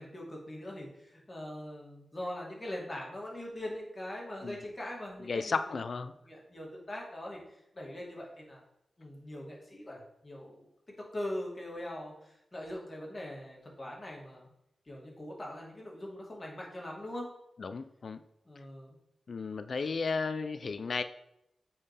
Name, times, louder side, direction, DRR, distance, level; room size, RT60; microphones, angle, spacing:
voice 1, 0.0-5.8 6.3-8.6 9.0-10.6 11.0-14.5 14.9-17.3 18.4-19.0, left 1 dB, 35° left, -2 dB, 2.5 m, -42 dB
voice 2, 5.2-6.1 17.6-18.2 19.3-21.0, left 4 dB, 65° left, 10 dB, 0.4 m, -34 dB
8.8 x 4.4 x 3.4 m, 0.81 s
cardioid pair, 50°, 0 cm